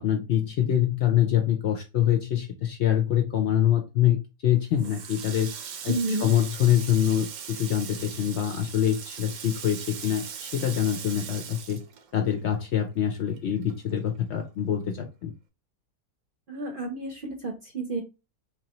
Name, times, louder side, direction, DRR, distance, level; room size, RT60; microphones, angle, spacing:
voice 1, 0.0-5.5 5.8-11.8 12.1-15.3, left 10 dB, 65° left, 4 dB, 0.7 m, -25 dB
Water tap faucet, 4.8-12.6 12.9-14.3, right 7 dB, 80° right, 1.1 m, -40 dB
voice 2, 5.9-6.3 16.5-18.0, right 2 dB, 50° right, 2 dB, 0.7 m, -31 dB
3.9 x 3.0 x 2.8 m, 0.28 s
omnidirectional pair, 1.5 m